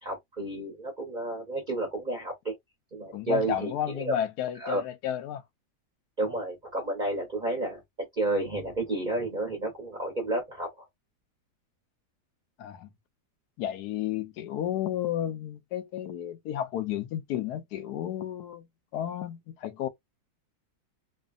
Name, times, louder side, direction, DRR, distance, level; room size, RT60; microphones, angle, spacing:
voice 1, 0.0-2.6 2.9-4.1 4.6-4.8 6.2-7.8 8.1-10.8, right 2 dB, 35° right, 0.9 m, -31 dB
voice 2, 3.1-5.4 12.6-12.9 13.6-18.7 18.9-19.9, left 11 dB, 75° left, 1.2 m, -32 dB
3.2 x 2.3 x 2.4 m
omnidirectional pair, 1.7 m